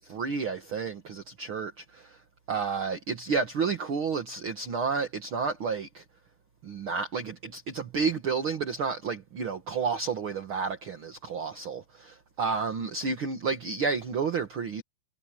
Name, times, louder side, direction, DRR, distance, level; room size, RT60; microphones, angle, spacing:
voice 1, 0.1-2.2 2.5-6.0 6.6-14.8, right 5 dB, 55° right, 1.5 m, -31 dB
omnidirectional pair, 4.7 m